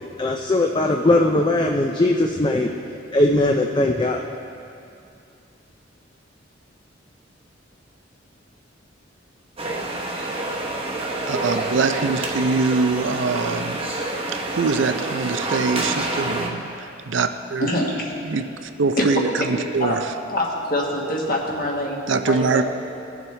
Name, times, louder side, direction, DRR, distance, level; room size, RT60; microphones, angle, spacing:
voice 1, 0.2-2.7 3.1-4.2, left 2 dB, 25° left, 1 dB, 0.4 m, -19 dB
sound 1, 9.6-16.5, right 2 dB, 30° right, 0.9 m, -27 dB
voice 2, 11.3-13.8 14.3-17.7 18.2-20.1 22.1-22.6, right 4 dB, 70° right, 8 dB, 0.5 m, -23 dB
voice 3, 17.6-18.1 19.0-19.1 19.4-19.9 20.3-22.6, left 1 dB, 45° left, -2 dB, 1.4 m, -25 dB
17.0 x 7.1 x 3.3 m, 2.5 s
head